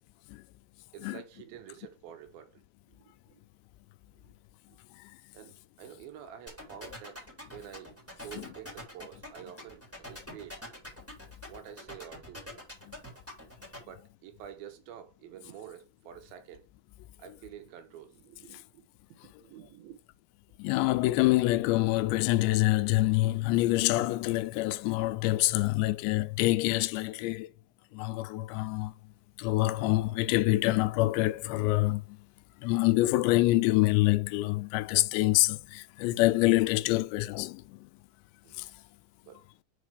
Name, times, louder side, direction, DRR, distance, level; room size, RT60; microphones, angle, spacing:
voice 1, 0.9-2.6 2.9-3.4 4.2-4.3 4.7-4.8 5.3-7.9 8.2-10.6 11.4-12.4 13.8-16.6 17.2-18.9 19.2-20.0 38.4-38.5 39.3-39.4, right 10 dB, 70° right, 2.5 m, -48 dB
sound 1, 6.5-13.8, left 1 dB, 5° right, 2.3 m, -44 dB
voice 2, 20.6-27.5 27.9-28.9 29.4-32.0 32.6-37.9 38.6-38.7, left 18 dB, 85° left, 2.7 m, -26 dB
5.6 x 5.3 x 4.8 m
omnidirectional pair, 5.1 m